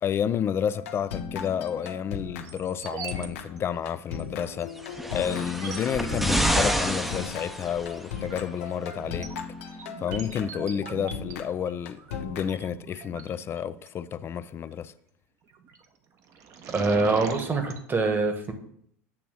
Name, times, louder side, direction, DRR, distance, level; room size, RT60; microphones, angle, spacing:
voice 1, 0.0-4.7 5.1-9.3 10.0-14.9, left 8 dB, 30° left, 0.4 m, -30 dB
sound 1, 0.7-13.1, left 7 dB, 70° left, 0.8 m, -38 dB
sound 2, 1.4-1.9 2.4-3.3 3.5-3.6 4.1-4.2 4.9-5.0 5.5-5.9 7.2-7.5 8.0-13.9 15.5-15.9 16.2-17.8, right 6 dB, 45° right, 0.9 m, -41 dB
sound 3, 4.8-8.1 9.1-9.2, equal, 5° right, 0.7 m, -28 dB
voice 2, 16.7-18.5, right 3 dB, 25° right, 1.3 m, -24 dB
8.6 x 3.0 x 6.2 m
hypercardioid pair, 85°, 8 cm